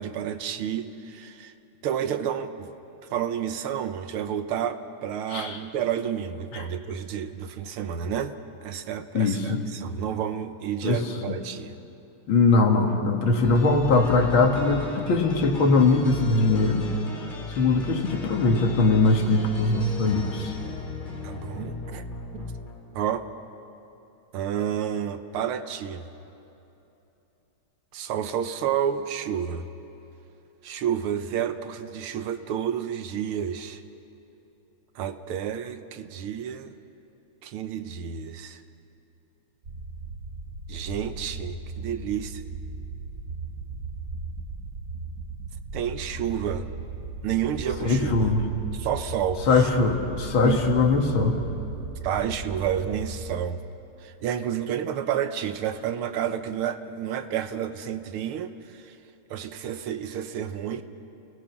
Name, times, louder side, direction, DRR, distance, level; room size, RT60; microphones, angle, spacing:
voice 1, 0.0-1.5 1.8-2.7 3.1-8.3 8.6-11.7 21.2-22.0 22.4-22.5 22.9-23.3 24.3-26.1 27.9-29.7 30.6-33.8 35.0-36.8 37.4-38.6 40.7-42.4 45.7-46.7 47.2-48.3 48.7-49.7 50.4-50.6 52.0-53.6 54.0-59.0 59.3-60.8, right 9 dB, 85° right, 10 dB, 1.8 m, -30 dB
voice 2, 9.1-9.6 10.8-11.0 12.3-16.8 17.6-20.6 47.8-48.4 49.5-51.4, left 3 dB, 70° left, 3 dB, 2.6 m, -21 dB
sound 1, 13.4-23.2, left 2 dB, 25° left, 2.0 m, -36 dB
sound 2, 39.6-53.3, right 3 dB, 45° right, 1.7 m, -37 dB
30.0 x 19.0 x 6.0 m, 2.9 s
omnidirectional pair, 2.4 m